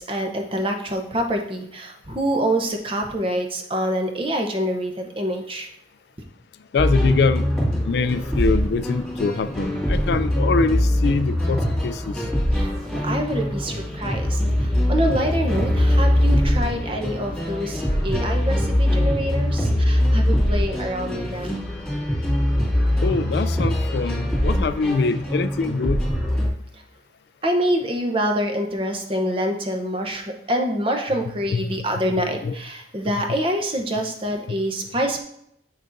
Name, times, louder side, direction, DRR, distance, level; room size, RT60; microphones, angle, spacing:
voice 1, 0.0-5.7 12.5-21.5 27.4-35.2, equal, 30° right, 3 dB, 0.8 m, -26 dB
voice 2, 6.7-7.5 7.8-12.2 23.0-26.0 31.5-31.6 32.4-32.5 34.5-34.6, left 4 dB, 65° left, 13 dB, 0.3 m, -24 dB
sound 1, 6.8-26.5, left 1 dB, ahead, 2.3 m, -22 dB
7.1 x 6.2 x 2.6 m, 0.73 s
head